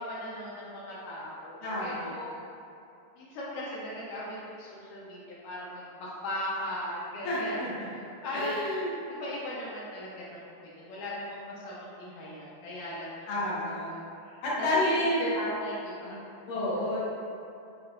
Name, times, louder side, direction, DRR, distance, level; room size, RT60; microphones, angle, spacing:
voice 1, 0.0-2.4 3.2-7.6 7.8-8.8 9.1-10.5 10.8-13.3 14.2-14.7 14.9-16.2, left 1 dB, 85° left, -6 dB, 1.7 m, -38 dB
voice 2, 1.6-2.1 7.2-7.7 8.3-8.9 13.3-13.9 14.4-15.3 16.5-17.1, left 1 dB, 70° left, -9 dB, 2.4 m, -29 dB
6.5 x 2.4 x 2.5 m, 2.7 s
omnidirectional pair, 4.3 m